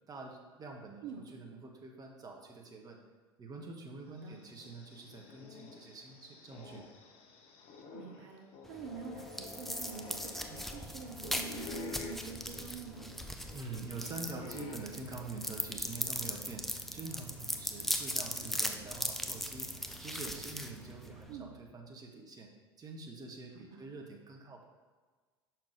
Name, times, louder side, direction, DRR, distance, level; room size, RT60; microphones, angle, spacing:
voice 1, 0.1-3.0 3.4-6.9 13.5-16.6 16.9-19.7 20.0-22.5 22.8-24.6, right 3 dB, 30° right, 1 dB, 1.3 m, -46 dB
sound 1, 4.1-16.4 16.8-16.9 18.0-19.3, left 5 dB, 50° left, 1.0 m, -50 dB
voice 2, 7.9-13.1 21.3-21.5 23.7-23.8, right 6 dB, 65° right, 2 dB, 0.8 m, -46 dB
sound 2, 8.7-21.3, equal, ahead, 0.6 m, -39 dB
sound 3, 10.7-21.6, right 6 dB, 85° right, 1.1 m, -55 dB
5.9 x 4.5 x 5.0 m, 1.4 s
hypercardioid pair, 70°, 13 cm